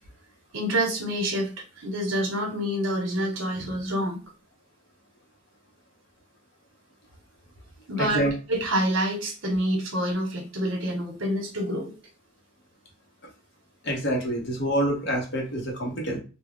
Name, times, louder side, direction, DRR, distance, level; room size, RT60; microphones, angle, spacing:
voice 1, 0.5-1.5 1.8-4.2 7.9-8.2 8.5-11.9, equal, 70° right, 1 dB, 1.0 m, -27 dB
voice 2, 8.0-8.3 13.8-16.2, right 1 dB, 55° left, -1 dB, 0.9 m, -27 dB
2.3 x 2.2 x 3.5 m, 0.34 s
head